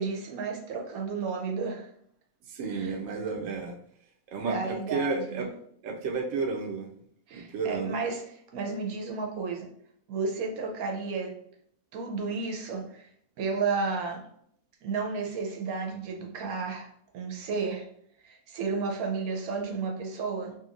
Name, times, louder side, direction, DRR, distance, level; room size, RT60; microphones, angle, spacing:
voice 1, 0.0-1.9 2.7-2.9 4.4-5.5 7.3-8.2 8.5-9.7 10.1-11.4 11.9-13.1 13.4-14.2 14.8-16.9 17.1-17.9 18.2-20.6, right 4 dB, 80° right, 1 dB, 1.1 m, -32 dB
voice 2, 2.5-3.7 4.3-5.5 5.8-6.9 7.3-7.9, right 4 dB, 65° right, 1 dB, 0.8 m, -32 dB
2.9 x 2.6 x 2.5 m, 0.67 s
omnidirectional pair, 1.5 m